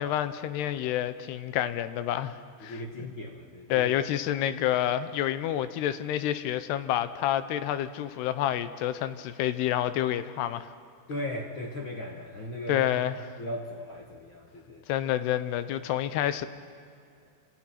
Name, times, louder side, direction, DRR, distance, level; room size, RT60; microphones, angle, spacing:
voice 1, 0.0-2.8 3.7-10.7 12.7-13.2 14.9-16.5, left 11 dB, 80° left, 12 dB, 2.9 m, -28 dB
voice 2, 2.6-4.0 11.1-12.9 13.4-14.9, left 1 dB, 50° left, 0 dB, 1.5 m, -37 dB
30.0 x 26.5 x 6.0 m, 2.4 s
omnidirectional pair, 4.9 m